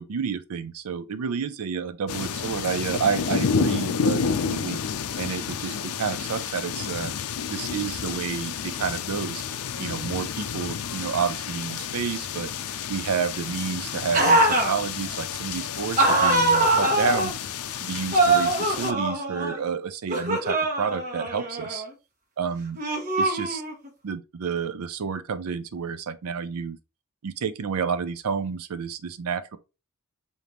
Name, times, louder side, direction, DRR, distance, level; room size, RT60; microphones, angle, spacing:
voice 1, 0.0-4.8 5.2-7.1 7.5-9.4 9.8-12.5 12.9-17.3 17.8-21.8 22.4-22.8 23.2-23.6 24.0-26.8 27.2-29.6, right 6 dB, 75° right, 0.5 m, -30 dB
sound 1, 2.1-18.9, left 6 dB, 75° left, 0.5 m, -30 dB
sound 2, 14.1-14.8 16.0-17.3 18.1-19.6 20.1-21.9 22.8-23.9, right 2 dB, 35° right, 1.2 m, -22 dB
5.0 x 2.7 x 2.9 m
head